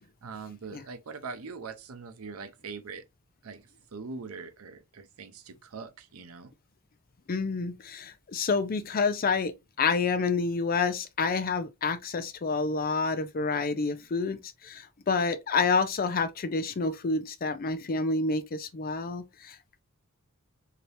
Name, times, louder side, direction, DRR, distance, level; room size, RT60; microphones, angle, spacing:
voice 1, 0.2-3.0 3.4-6.5, right 4 dB, 80° right, 0.6 m, -42 dB
voice 2, 7.3-19.6, left 4 dB, 45° left, 0.5 m, -28 dB
3.2 x 2.8 x 2.6 m
head